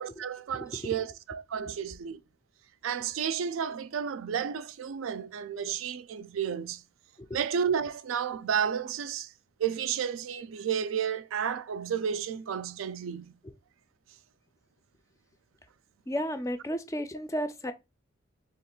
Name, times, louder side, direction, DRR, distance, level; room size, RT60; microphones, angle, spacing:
voice 1, 0.0-2.2 2.8-6.8 7.3-9.3 9.6-13.3, right 7 dB, 90° right, 0.4 m, -32 dB
voice 2, 16.1-17.7, equal, 15° left, 0.3 m, -33 dB
2.9 x 2.4 x 4.3 m
head